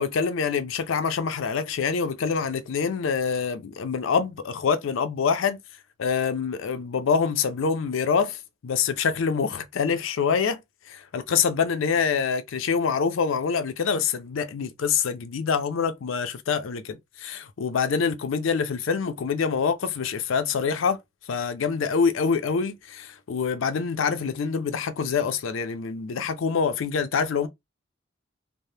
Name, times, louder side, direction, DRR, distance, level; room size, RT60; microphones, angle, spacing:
voice 1, 0.0-5.6 6.0-10.6 10.9-21.0 21.3-27.5, left 6 dB, 70° left, 0.4 m, -25 dB
3.2 x 2.0 x 2.7 m
head